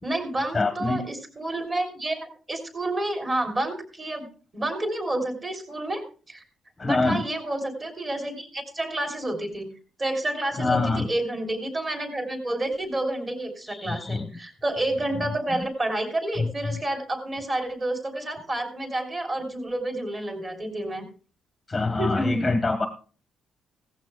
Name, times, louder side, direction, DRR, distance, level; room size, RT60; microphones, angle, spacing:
voice 1, 0.0-4.3 4.5-6.4 6.8-9.7 10.0-21.0 22.0-22.6, right 1 dB, 25° right, 5 dB, 3.4 m, -29 dB
voice 2, 0.5-1.0 6.8-7.2 10.6-11.1 13.7-14.3 21.7-22.9, left 3 dB, 15° left, 7 dB, 1.1 m, -25 dB
16.5 x 15.0 x 2.3 m, 0.38 s
cardioid pair, 150°, 0 cm